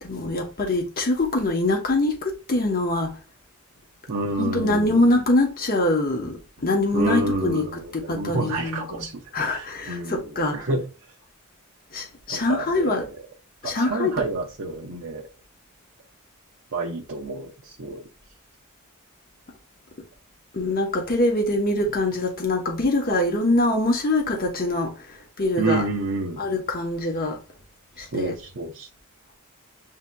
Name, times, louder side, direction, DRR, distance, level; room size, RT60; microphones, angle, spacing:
voice 1, 0.0-3.1 4.4-7.7 7.9-9.1 9.3-10.6 11.9-13.0 13.6-14.2 20.5-25.8 26.4-27.4 28.0-28.3, left 2 dB, 45° left, 0.8 m, -24 dB
voice 2, 4.1-5.0 6.2-6.3 6.7-10.9 12.3-13.2 13.6-15.3 16.7-18.0 25.6-26.4 28.1-28.9, right 2 dB, 65° right, 0.7 m, -29 dB
7.2 x 2.7 x 2.2 m
head